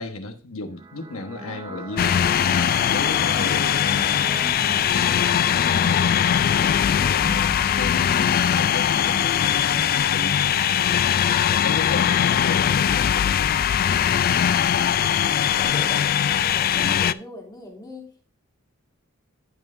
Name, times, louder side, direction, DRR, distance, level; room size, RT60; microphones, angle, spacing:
voice 1, 0.0-2.2 2.6-3.8 5.5-6.5 7.1-10.8 11.6-13.9, left 2 dB, 70° left, 1.3 m, -34 dB
sound 1, 0.7-11.7, right 2 dB, 20° right, 0.6 m, -39 dB
sound 2, 2.0-17.1, left 9 dB, 45° left, 0.3 m, -21 dB
voice 2, 14.5-18.2, left 1 dB, 20° left, 2.8 m, -41 dB
16.0 x 5.6 x 2.6 m
head